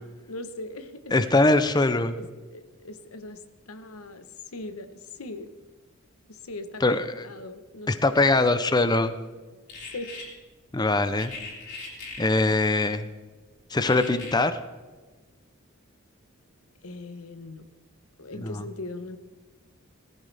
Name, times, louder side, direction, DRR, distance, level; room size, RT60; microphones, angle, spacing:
voice 1, 0.0-1.1 2.2-4.3 4.5-5.5 6.3-8.8 9.9-10.1 16.8-17.6 18.2-19.2, left 2 dB, 90° left, 10 dB, 1.1 m, -40 dB
voice 2, 1.1-2.2 6.8-7.3 7.9-9.1 10.7-11.3 12.2-13.1 13.7-14.6 18.4-18.5, left 2 dB, 20° left, 11 dB, 0.6 m, -22 dB
sound 1, 9.7-10.2 11.2-12.2 13.8-14.3, left 4 dB, 55° left, 5.5 m, -39 dB
19.5 x 14.5 x 3.4 m, 1.3 s
head